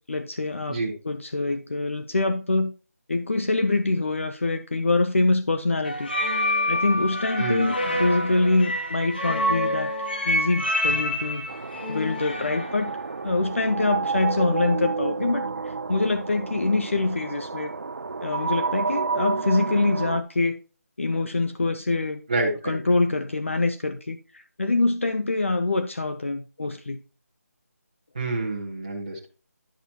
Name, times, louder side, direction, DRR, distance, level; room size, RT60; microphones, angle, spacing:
voice 1, 0.1-2.7 3.1-6.1 6.7-9.9 10.2-11.5 11.9-12.9 13.2-15.5 15.9-17.7 18.2-20.6 21.0-22.2 22.6-27.0, left 2 dB, 50° left, 0.6 m, -25 dB
sound 1, 5.8-12.8, left 1 dB, 35° left, 1.2 m, -27 dB
voice 2, 7.4-7.7 22.3-22.8 28.1-29.3, right 2 dB, 25° right, 1.0 m, -28 dB
sound 2, 11.5-20.2, right 4 dB, 65° right, 0.3 m, -30 dB
10.5 x 5.9 x 2.8 m
figure-of-eight pair, 180°, 9 cm